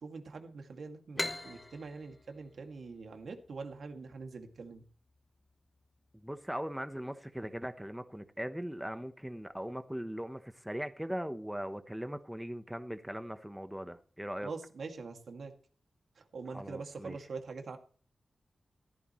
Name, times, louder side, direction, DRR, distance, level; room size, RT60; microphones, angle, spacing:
voice 1, 0.0-4.8 14.4-15.5 16.2-17.8, right 4 dB, 75° right, 2.2 m, -44 dB
sound 1, 1.2-4.6, left 2 dB, 20° left, 1.3 m, -41 dB
voice 2, 6.1-14.5 16.5-17.2, equal, 5° right, 1.0 m, -40 dB
15.0 x 14.0 x 3.1 m
wide cardioid pair, 115°, 0 cm